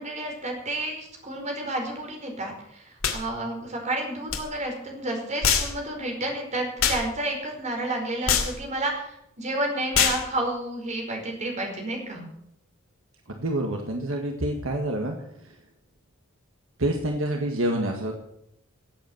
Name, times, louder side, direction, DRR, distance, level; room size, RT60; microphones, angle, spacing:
voice 1, 0.0-12.2, right 1 dB, 35° right, 2 dB, 4.9 m, -31 dB
sound 1, 3.0-3.2 4.3-4.4 5.4-5.7 6.8-7.0 8.3-8.5 9.9-10.2, left 7 dB, 75° left, 2.8 m, -23 dB
voice 2, 13.3-15.2 16.8-18.1, right 1 dB, 70° right, 2 dB, 1.8 m, -27 dB
16.5 x 8.4 x 7.9 m, 0.78 s
head